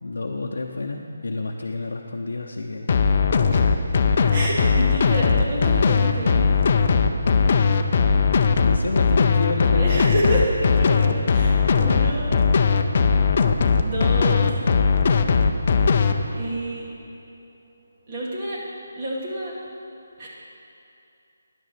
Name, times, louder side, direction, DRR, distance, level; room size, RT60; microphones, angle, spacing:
voice 1, 0.0-2.9 3.5-3.8 8.6-10.1, left 3 dB, 80° left, 0 dB, 0.7 m, -30 dB
sound 1, 2.9-16.1, left 5 dB, 45° left, 0.5 m, -18 dB
voice 2, 4.3-6.5 9.6-12.4 13.8-14.5 16.4-16.9 18.1-18.6 19.0-19.5 20.2-20.3, right 1 dB, 35° right, -5 dB, 2.3 m, -28 dB
10.0 x 6.4 x 6.7 m, 2.6 s
figure-of-eight pair, 160°, 0 cm